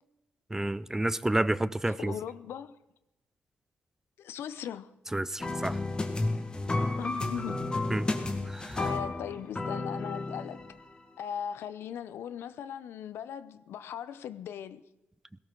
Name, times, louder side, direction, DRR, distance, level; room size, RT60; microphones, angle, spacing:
voice 1, 0.5-2.2 5.1-5.8 7.9-8.1 8.5-8.8, right 1 dB, 10° right, 0.5 m, -30 dB
voice 2, 2.0-2.8 4.2-4.9 7.0-7.6 8.8-10.6 11.2-14.8, left 9 dB, 85° left, 0.7 m, -38 dB
sound 1, 5.4-11.0, left 2 dB, 25° left, 1.7 m, -32 dB
18.0 x 17.0 x 3.9 m
cardioid pair, 100°, 4 cm